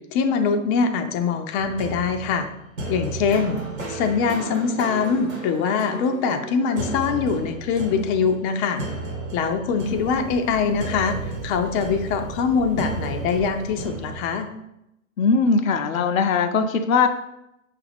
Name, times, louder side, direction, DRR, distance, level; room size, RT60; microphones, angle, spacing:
voice 1, 0.1-2.5 2.9-3.6 3.9-8.8 9.3-14.5, left 5 dB, 35° left, 6 dB, 0.5 m, -23 dB
sound 1, 1.6-14.5, right 2 dB, 90° right, 1.4 m, -34 dB
sound 2, 9.8-14.3, right 4 dB, 35° right, 0.7 m, -38 dB
voice 2, 15.2-17.1, left 5 dB, 85° left, 7 dB, 0.6 m, -20 dB
5.6 x 2.5 x 3.4 m, 0.84 s
hypercardioid pair, 105°, 40 cm